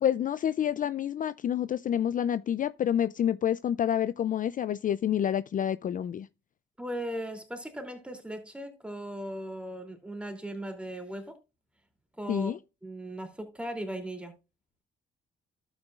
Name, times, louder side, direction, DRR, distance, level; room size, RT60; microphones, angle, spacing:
voice 1, 0.0-6.3 12.3-12.6, left 10 dB, 40° left, 0.4 m, -28 dB
voice 2, 6.8-11.4 12.2-12.5 12.8-14.3, right 1 dB, 5° right, 2.9 m, -38 dB
12.0 x 8.2 x 2.4 m
cardioid pair, 90°, 20 cm